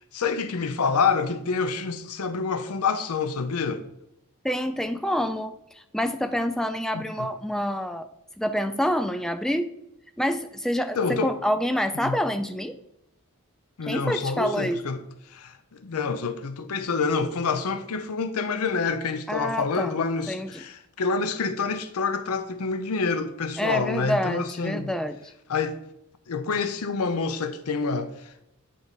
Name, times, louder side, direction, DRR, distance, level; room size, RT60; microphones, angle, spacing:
voice 1, 0.1-3.8 6.9-7.3 11.0-11.3 11.9-12.2 13.8-15.0 15.3-24.9 25.5-25.8 26.3-28.4, left 4 dB, 80° left, 0.6 m, -27 dB
voice 2, 4.4-5.5 5.9-8.1 8.4-9.7 10.2-12.7 13.9-14.8 19.3-19.9 20.3-20.6 23.6-25.2, equal, ahead, 0.3 m, -27 dB
9.1 x 3.4 x 3.9 m
head